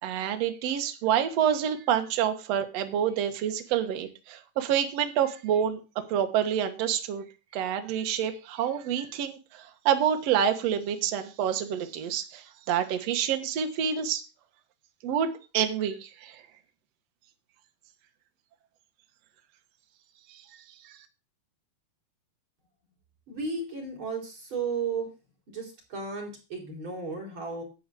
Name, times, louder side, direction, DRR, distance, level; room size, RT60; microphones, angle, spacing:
voice 1, 0.0-5.8 6.1-7.2 7.5-14.2 15.0-16.4 20.3-20.4 20.9-21.0, right 9 dB, 65° right, 7 dB, 1.7 m, -28 dB
voice 2, 23.3-25.1 25.5-27.6, right 4 dB, 30° right, -1 dB, 4.2 m, -34 dB
11.5 x 4.7 x 8.4 m, 0.31 s
omnidirectional pair, 4.6 m